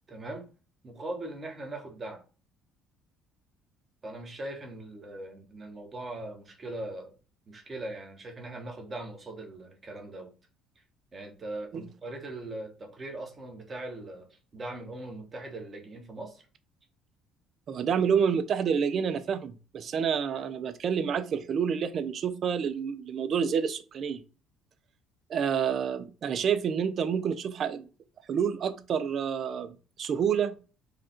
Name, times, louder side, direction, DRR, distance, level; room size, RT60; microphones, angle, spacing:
voice 1, 0.1-0.5 0.8-2.2 4.0-7.1 7.5-10.3 11.1-16.4, right 2 dB, 25° right, 1.2 m, -40 dB
voice 2, 17.7-24.2 25.3-27.8 28.3-30.6, right 7 dB, 45° right, 0.5 m, -28 dB
4.9 x 2.4 x 4.4 m
cardioid pair, 130°, 0 cm